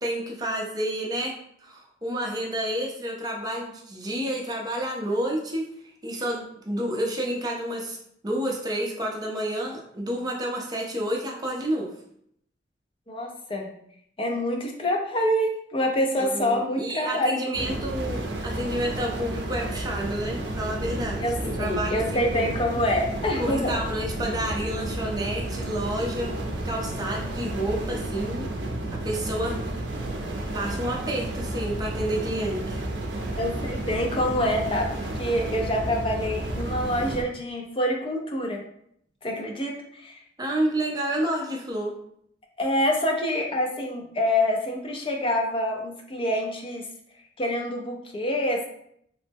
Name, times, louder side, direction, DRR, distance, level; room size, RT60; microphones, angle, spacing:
voice 1, 0.0-1.3 1.6-5.6 6.0-8.0 8.2-11.9 16.2-22.5 23.4-26.4 26.6-28.5 28.9-29.6 30.5-32.8 40.4-41.9, right 1 dB, 20° right, -1 dB, 0.5 m, -29 dB
voice 2, 13.1-13.7 14.2-17.3 21.2-23.8 33.4-38.6 39.2-40.2 42.6-46.8 47.4-48.7, left 1 dB, 30° left, 1 dB, 0.5 m, -26 dB
sound 1, 17.5-37.2, right 1 dB, 75° right, 0.5 m, -32 dB
3.0 x 2.0 x 3.3 m, 0.70 s
head